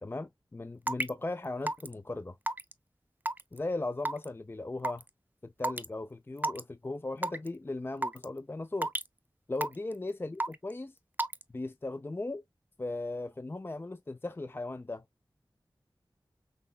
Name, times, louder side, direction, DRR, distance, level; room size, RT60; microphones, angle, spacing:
voice 1, 0.0-2.4 3.5-5.0 5.4-8.9 9.5-11.0 11.5-12.4 12.8-15.0, left 2 dB, 25° left, 0.4 m, -37 dB
Raindrop / Water tap faucet / Drip, 0.9-1.1 1.7-1.9 2.5-2.7 3.3-3.6 4.1-4.3 4.8-5.0 5.6-5.9 6.4-6.6 7.2-7.5 8.0-8.3 8.8-9.1 9.6-9.9 10.4-10.7 11.2-11.4, right 1 dB, 20° right, 0.6 m, -31 dB
5.9 x 3.2 x 2.2 m
wide cardioid pair, 60°, 8 cm